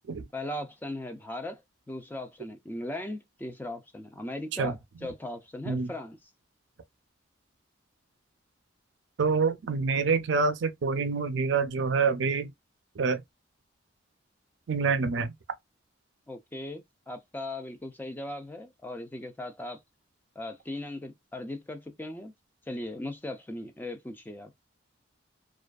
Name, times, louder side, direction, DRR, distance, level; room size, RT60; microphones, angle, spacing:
voice 1, 0.3-1.6 1.9-6.3 16.3-19.8 20.4-22.3 22.7-24.5, left 1 dB, 10° left, 0.4 m, -38 dB
voice 2, 9.2-12.5 13.0-13.2 14.7-15.3, right 4 dB, 65° right, 0.4 m, -26 dB
2.4 x 2.3 x 2.3 m
head